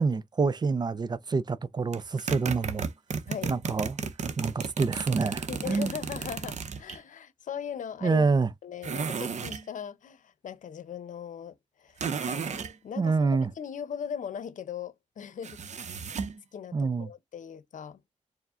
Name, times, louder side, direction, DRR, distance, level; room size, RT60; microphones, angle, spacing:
voice 1, 0.0-2.9 3.5-4.0 4.4-5.9 8.0-8.5 13.0-13.5 16.7-17.1, right 4 dB, 35° right, 0.4 m, -27 dB
sound 1, 1.9-7.0 8.8-9.6 12.0-12.7 15.4-16.4, right 5 dB, 65° right, 0.7 m, -34 dB
voice 2, 5.5-8.3 8.6-12.5 12.8-15.6 16.5-18.0, left 8 dB, 90° left, 0.7 m, -39 dB
4.7 x 2.1 x 3.7 m
wide cardioid pair, 115°, 13 cm